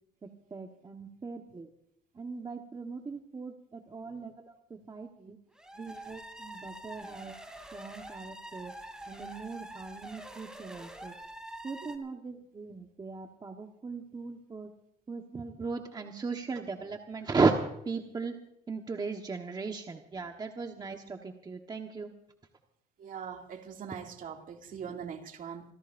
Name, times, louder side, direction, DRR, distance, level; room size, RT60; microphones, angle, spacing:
voice 1, 0.2-1.7 2.2-5.4 5.8-7.4 7.7-8.7 9.1-11.1 11.6-14.7 15.1-17.5 17.8-18.3 18.7-22.1, right 4 dB, 25° right, 1.3 m, -36 dB
sound 1, 5.5-12.0, right 1 dB, 5° right, 3.1 m, -46 dB
voice 2, 20.8-21.1 23.0-25.6, right 7 dB, 55° right, 2.5 m, -42 dB
27.5 x 16.0 x 2.6 m
cardioid pair, 110°, 17 cm